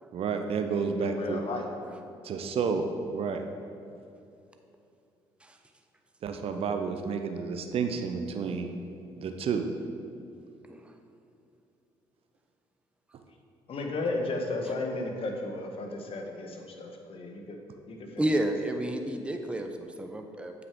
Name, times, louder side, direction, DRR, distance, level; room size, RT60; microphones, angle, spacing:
voice 1, 0.1-1.4 2.2-3.4 6.2-8.7 9.2-9.7, right 5 dB, 55° right, 6 dB, 0.6 m, -30 dB
voice 2, 0.7-1.7 13.7-17.6 17.9-18.3, left 2 dB, 55° left, 2 dB, 1.2 m, -34 dB
voice 3, 18.2-20.5, right 1 dB, 10° right, 5 dB, 0.7 m, -31 dB
7.9 x 5.9 x 3.6 m, 2.7 s
supercardioid pair, 60°, 12 cm